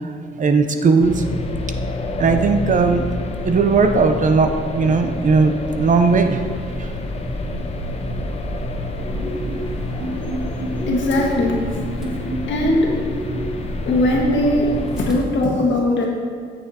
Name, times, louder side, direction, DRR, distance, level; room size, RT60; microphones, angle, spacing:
voice 1, 0.4-1.2 2.2-3.1 3.4-6.4 6.8-6.9, right 4 dB, 40° right, 7 dB, 0.6 m, -17 dB
sound 1, 1.0-15.2, left 2 dB, 30° left, 0.8 m, -28 dB
sound 2, 6.0-15.4, equal, 5° right, 1.4 m, -34 dB
sound 3, 9.0-14.1, equal, 60° right, 1.7 m, -30 dB
voice 2, 10.9-11.8 12.5-12.9 13.8-14.7 15.0-16.1, left 1 dB, 70° left, -1 dB, 1.5 m, -19 dB
8.9 x 6.6 x 2.8 m, 2.1 s
cardioid pair, 90°, 20 cm